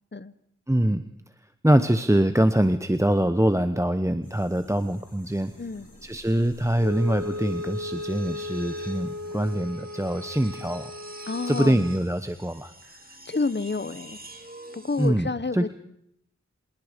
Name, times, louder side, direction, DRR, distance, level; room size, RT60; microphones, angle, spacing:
voice 1, 0.7-1.0 1.6-5.5 6.0-10.9 11.5-12.7 15.0-15.7, right 1 dB, 10° right, 10 dB, 1.1 m, -24 dB
sound 1, 4.2-9.6, left 1 dB, 55° left, 5.5 m, -53 dB
sound 2, 5.0-15.1, right 1 dB, 30° right, 2.9 m, -47 dB
Wind instrument woodwind instrument, 6.8-12.1, left 1 dB, 65° right, 2.4 m, -36 dB
voice 2, 11.3-11.8 13.2-14.2 14.7-15.7, left 3 dB, 40° left, 15 dB, 1.0 m, -29 dB
26.0 x 21.0 x 5.2 m, 0.73 s
wide cardioid pair, 50°, 29 cm